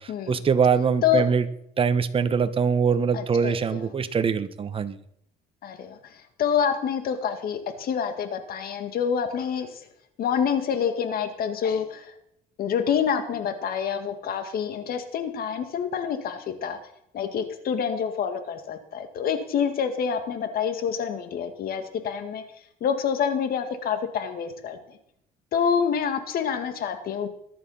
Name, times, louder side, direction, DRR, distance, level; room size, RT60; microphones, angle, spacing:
voice 1, 0.0-1.4 1.8-5.0, right 6 dB, 30° right, 10 dB, 1.2 m, -23 dB
voice 2, 3.1-3.9 5.6-9.8 10.2-12.1 12.6-16.8 17.1-22.4 22.8-24.8 25.5-27.3, left 7 dB, 60° left, 8 dB, 1.9 m, -27 dB
21.0 x 11.0 x 5.7 m, 0.74 s
cardioid pair, 110°, 17 cm